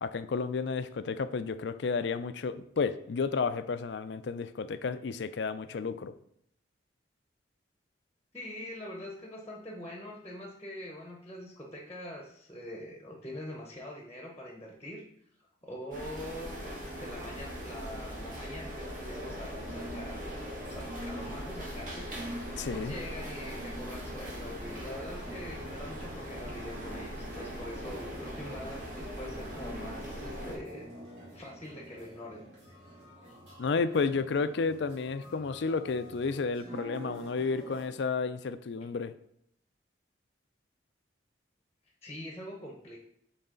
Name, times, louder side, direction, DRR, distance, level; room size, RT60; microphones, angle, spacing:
voice 1, 0.0-6.1 22.6-22.9 33.6-39.1, left 4 dB, 70° left, 12 dB, 0.4 m, -32 dB
voice 2, 8.3-15.1 15.6-30.9 31.3-32.5 33.3-33.4 38.8-38.9 42.0-43.0, left 1 dB, 15° left, 0 dB, 0.9 m, -44 dB
sound 1, 15.9-30.6, equal, 45° right, 1.7 m, -40 dB
sound 2, 19.4-37.9, right 1 dB, 70° right, 2.6 m, -47 dB
7.9 x 4.0 x 3.8 m, 0.71 s
head